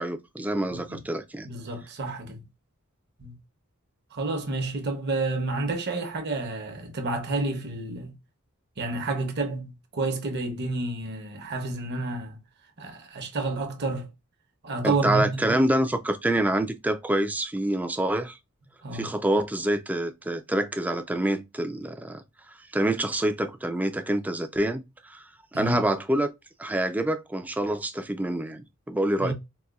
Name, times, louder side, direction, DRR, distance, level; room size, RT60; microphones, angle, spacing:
voice 1, 0.0-1.5 14.8-18.4 18.9-22.2 22.7-25.2 25.5-26.3 26.6-29.3, right 1 dB, 5° right, 0.3 m, -26 dB
voice 2, 0.7-1.0 1.4-2.4 3.2-3.3 4.1-8.1 8.8-12.4 12.8-14.1 14.6-15.6 18.8-19.1 25.5-25.8 29.2-29.3, right 2 dB, 50° right, 0.8 m, -30 dB
4.1 x 2.1 x 2.3 m
head